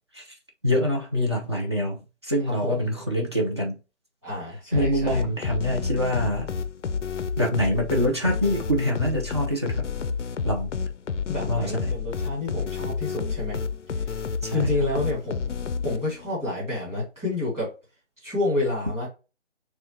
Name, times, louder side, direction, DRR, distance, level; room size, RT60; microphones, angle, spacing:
voice 1, 0.6-3.8 4.7-6.5 7.4-9.9 10.4-10.7 11.5-12.0 14.4-14.8, equal, 25° right, 0.6 m, -25 dB
voice 2, 2.5-2.9 4.2-5.2 11.3-13.6 14.5-15.6 15.8-17.7 18.2-19.1, left 2 dB, 5° right, 1.8 m, -29 dB
sound 1, 4.7-16.3, left 5 dB, 80° left, 0.5 m, -30 dB
6.1 x 2.3 x 2.7 m
figure-of-eight pair, 150°, 36 cm